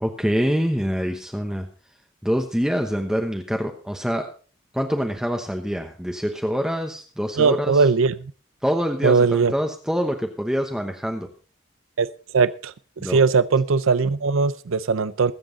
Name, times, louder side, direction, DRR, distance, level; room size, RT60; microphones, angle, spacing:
voice 1, 0.0-1.7 2.2-4.3 4.7-7.8 8.6-11.3 13.0-13.2, equal, 5° right, 1.0 m, -25 dB
voice 2, 7.4-8.3 9.0-9.5 12.0-12.1 12.3-12.7 13.0-15.3, right 4 dB, 85° right, 0.5 m, -19 dB
22.0 x 7.7 x 3.9 m
head